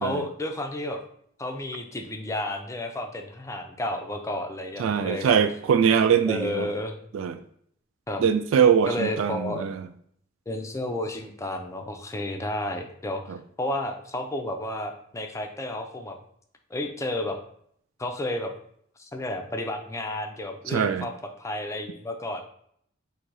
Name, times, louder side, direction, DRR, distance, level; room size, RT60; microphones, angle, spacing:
voice 1, 0.0-1.0 1.4-5.4 6.3-7.0 8.1-8.2 8.9-9.6 10.5-16.2 16.7-17.4 18.0-18.5 19.0-22.4, left 1 dB, 15° left, 4 dB, 0.5 m, -32 dB
voice 2, 4.8-6.7 7.1-7.4 8.2-9.8 13.3-13.4 20.7-21.1, right 7 dB, 80° right, 10 dB, 0.3 m, -22 dB
3.9 x 2.7 x 4.6 m, 0.66 s
head